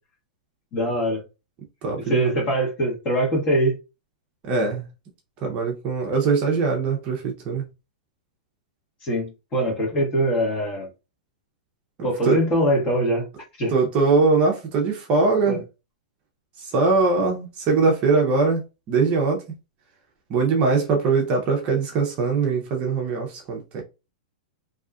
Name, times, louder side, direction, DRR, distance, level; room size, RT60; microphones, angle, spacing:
voice 1, 0.7-1.2 2.1-3.7 9.0-10.9 12.0-13.2 13.6-13.7 15.4-15.6, right 1 dB, 25° left, 1.3 m, -22 dB
voice 2, 1.8-2.3 4.4-4.9 5.4-7.6 12.0-12.4 13.7-15.6 16.6-18.6 18.9-19.4 20.3-23.8, right 4 dB, 30° right, 0.6 m, -21 dB
2.7 x 2.3 x 2.4 m
hypercardioid pair, 150°, 4 cm